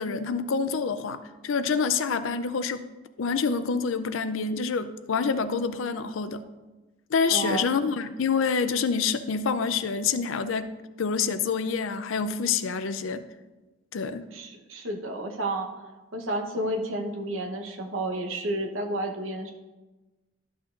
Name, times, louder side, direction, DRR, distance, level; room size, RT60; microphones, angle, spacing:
voice 1, 0.0-2.9 3.2-6.4 7.1-10.7 11.0-13.2 13.9-14.2, left 5 dB, 75° left, 12 dB, 0.5 m, -27 dB
voice 2, 7.3-7.7 14.3-15.7 16.1-19.5, right 1 dB, 75° right, 2 dB, 1.0 m, -31 dB
12.0 x 6.1 x 2.5 m, 1.2 s
head